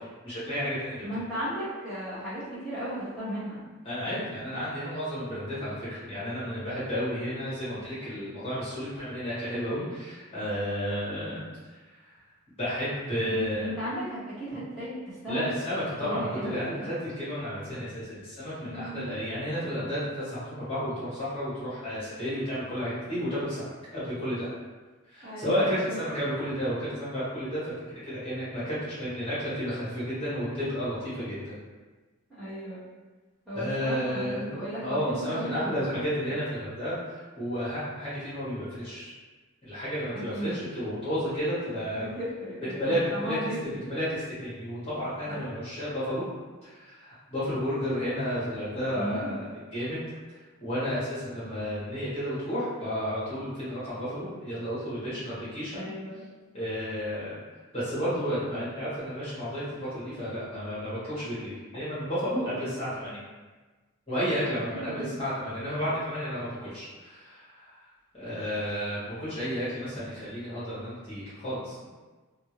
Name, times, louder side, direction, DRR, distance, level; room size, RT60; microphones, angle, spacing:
voice 1, 0.0-1.0 3.8-11.8 12.6-13.7 15.3-24.5 25.1-31.5 33.5-34.5 34.8-39.1 39.6-42.1 42.7-43.4 43.9-46.2 46.6-50.0 50.6-55.9 56.5-57.4 57.7-63.2 64.1-67.8 68.1-71.8, equal, 25° left, -12 dB, 1.1 m, -32 dB
voice 2, 1.0-3.6 13.3-15.5 16.0-16.9 18.6-19.1 25.2-26.0 32.3-32.8 33.5-35.9 40.1-40.6 42.0-43.8 45.3-45.4 48.9-49.4 55.1-55.2 55.7-56.2 64.4-65.1, equal, ahead, -16 dB, 1.1 m, -36 dB
2.6 x 2.4 x 2.9 m, 1.3 s
head